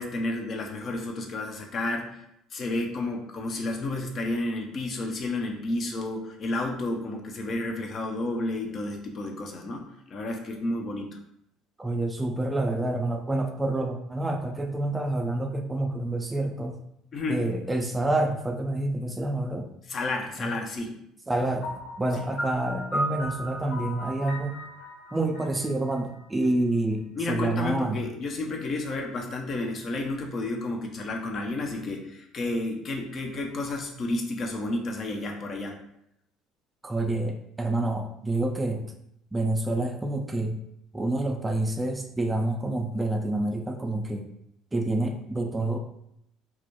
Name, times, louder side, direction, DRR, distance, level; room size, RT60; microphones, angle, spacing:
voice 1, 0.0-2.2 2.5-11.2 17.1-17.5 19.9-21.0 27.2-35.8, left 2 dB, 45° left, 2 dB, 0.5 m, -31 dB
voice 2, 11.8-16.8 17.3-19.7 20.4-20.5 21.3-21.7 22.0-24.5 25.1-28.0 36.8-38.8 39.3-40.6 40.9-44.3 44.7-45.8, right 2 dB, 15° right, 4 dB, 0.3 m, -28 dB
Piano, 21.6-26.5, equal, 70° left, 1.1 m, -35 dB
2.3 x 2.1 x 2.9 m, 0.76 s
hypercardioid pair, 65°, 0 cm